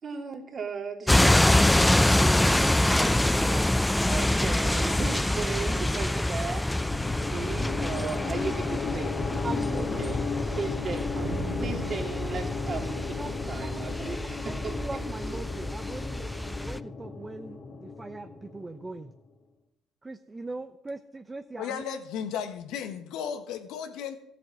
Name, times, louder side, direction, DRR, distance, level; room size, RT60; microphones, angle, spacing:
voice 1, 0.0-1.9 2.2-6.7 7.3-10.2 10.5-11.1 11.6-13.2 13.5-15.5, right 5 dB, 40° right, 2 dB, 3.1 m, -37 dB
sound 1, 1.1-16.8, left 1 dB, 10° left, 0.6 m, -26 dB
sound 2, 6.8-19.0, left 4 dB, 45° left, 2.2 m, -35 dB
voice 2, 9.4-9.9 13.2-13.3 13.6-13.7 14.0-14.2 14.4-19.1 20.0-21.8, right 3 dB, 20° right, 9 dB, 0.8 m, -40 dB
sound 3, 11.2-14.3, right 2 dB, 70° right, 3.0 m, -40 dB
voice 3, 21.6-24.2, left 8 dB, 70° left, 7 dB, 1.6 m, -34 dB
14.0 x 7.8 x 7.7 m, 0.81 s
hypercardioid pair, 60°, 0 cm